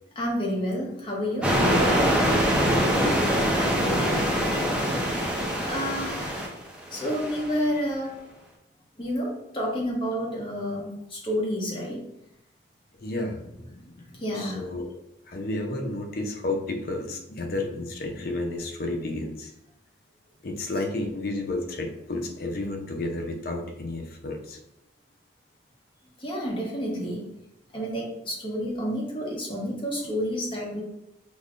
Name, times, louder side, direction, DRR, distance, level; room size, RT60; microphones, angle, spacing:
voice 1, 0.2-1.8 3.8-5.3 5.6-6.4 6.9-8.1 9.0-12.0 14.2-14.6 26.2-27.3 27.7-30.8, equal, 25° left, -3 dB, 0.9 m, -30 dB
sound 1, 1.4-7.6, equal, 5° right, 0.5 m, -24 dB
voice 2, 2.5-3.2 13.0-15.0 15.3-19.5 20.4-24.6 30.0-30.1, left 2 dB, 50° left, 3 dB, 0.5 m, -32 dB
5.3 x 2.2 x 2.4 m, 0.85 s
head